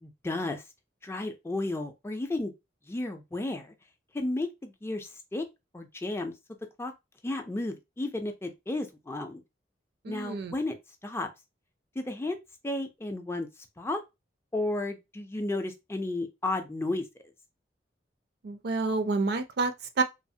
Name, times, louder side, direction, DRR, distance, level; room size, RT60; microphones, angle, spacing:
voice 1, 0.0-0.6 1.0-2.5 2.9-3.7 4.1-5.4 5.7-6.3 6.8-6.9 7.2-9.4 10.1-10.8 11.0-11.3 12.0-12.4 12.6-13.5 13.8-14.0 14.5-17.0, left 2 dB, 15° left, 0.4 m, -33 dB
voice 2, 10.0-10.5 18.4-20.0, right 3 dB, 60° right, 0.4 m, -29 dB
3.1 x 2.0 x 2.7 m
head